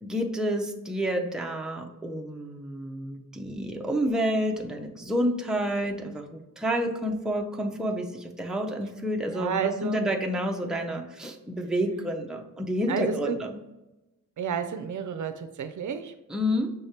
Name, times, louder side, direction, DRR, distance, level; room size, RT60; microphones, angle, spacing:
voice 1, 0.0-13.5 16.3-16.7, equal, ahead, 2 dB, 0.5 m, -29 dB
voice 2, 9.3-10.1 12.9-13.4 14.4-16.1, right 7 dB, 65° right, 9 dB, 0.4 m, -31 dB
5.6 x 3.3 x 2.8 m, 0.99 s
wide cardioid pair, 125°, 33 cm